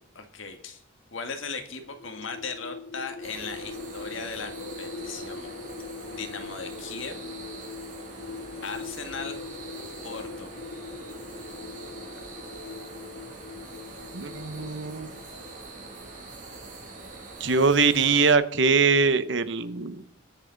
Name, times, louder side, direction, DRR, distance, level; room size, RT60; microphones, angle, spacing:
voice 1, 0.2-0.8 1.1-5.5 6.1-7.2 8.6-9.4 9.8-10.5, left 4 dB, 75° left, 6 dB, 1.7 m, -37 dB
sound 1, 1.8-16.1, left 4 dB, 60° left, 1.2 m, -41 dB
sound 2, 3.2-18.3, right 3 dB, 40° right, 2.6 m, -43 dB
voice 2, 14.1-15.1 17.4-20.0, right 4 dB, 65° right, 12 dB, 0.9 m, -22 dB
20.5 x 7.2 x 4.0 m, 0.66 s
head